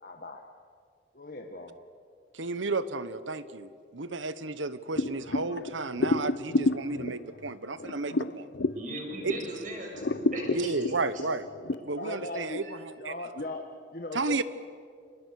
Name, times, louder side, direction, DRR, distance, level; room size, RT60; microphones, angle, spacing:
voice 1, 0.0-0.5 1.1-1.8 11.6-12.6 13.0-14.4, left 2 dB, 50° left, 3 dB, 1.4 m, -39 dB
voice 2, 2.3-8.5 9.2-9.4 10.5-11.5 11.8-12.8 13.0-13.1 14.1-14.4, right 3 dB, 90° right, 14 dB, 1.1 m, -32 dB
sound 1, 5.0-9.6 9.9-11.8, left 2 dB, 70° left, 0.8 m, -30 dB
voice 3, 8.7-10.7 12.6-12.7, right 1 dB, 45° right, 1 dB, 6.7 m, -38 dB
30.0 x 26.5 x 6.6 m, 2.3 s
head